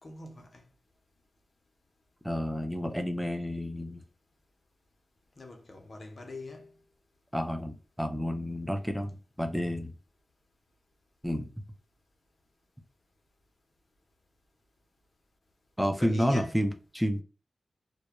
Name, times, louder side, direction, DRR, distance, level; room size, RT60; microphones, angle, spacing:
voice 1, 0.0-0.7 5.4-6.8 16.0-16.7, left 2 dB, 55° left, 0.6 m, -43 dB
voice 2, 2.2-4.0 7.3-9.9 11.2-11.5 15.8-17.2, equal, ahead, 0.4 m, -30 dB
2.2 x 2.1 x 2.8 m
cardioid pair, 50°, 0 cm